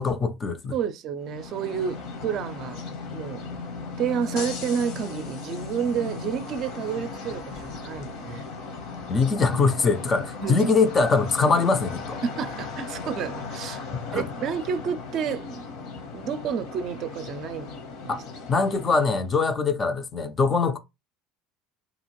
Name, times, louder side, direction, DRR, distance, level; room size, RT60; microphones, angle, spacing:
voice 1, 0.0-0.7 9.1-12.2 13.9-14.2 18.1-18.2 18.5-20.8, left 4 dB, 25° left, 0.4 m, -23 dB
voice 2, 0.7-2.8 3.1-3.4 4.0-8.4 10.4-10.6 12.2-13.8 14.1-15.6 16.1-17.7 18.0-18.2, right 7 dB, 45° right, 0.4 m, -30 dB
sound 1, 1.2-19.3, left 4 dB, 65° left, 0.9 m, -37 dB
2.8 x 2.5 x 3.0 m
cardioid pair, 140°, 0 cm